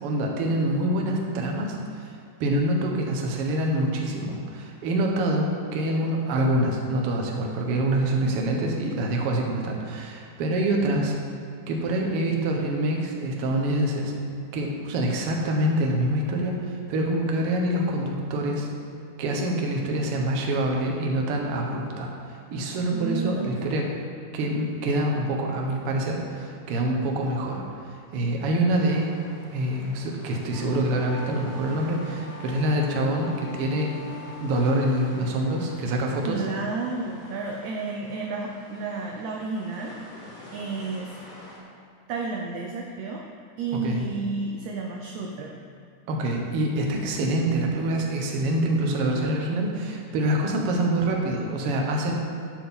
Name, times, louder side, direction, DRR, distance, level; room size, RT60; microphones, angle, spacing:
voice 1, 0.0-2.1 2.4-11.2 11.7-14.1 14.5-18.7 19.2-23.9 24.3-29.1 29.5-33.9 34.4-36.4 43.8-44.1 46.1-52.2, right 1 dB, 60° right, 0 dB, 1.7 m, -26 dB
voice 2, 22.9-23.8 35.8-35.9 36.2-40.0 40.2-41.1 42.1-43.2 43.6-45.6, right 3 dB, 75° right, 1 dB, 1.8 m, -32 dB
sound 1, 28.8-41.6, equal, 20° left, 1.1 m, -48 dB
Wind instrument woodwind instrument, 30.3-35.7, left 4 dB, 65° left, 1.3 m, -44 dB
11.0 x 8.7 x 3.8 m, 2.4 s
omnidirectional pair, 3.8 m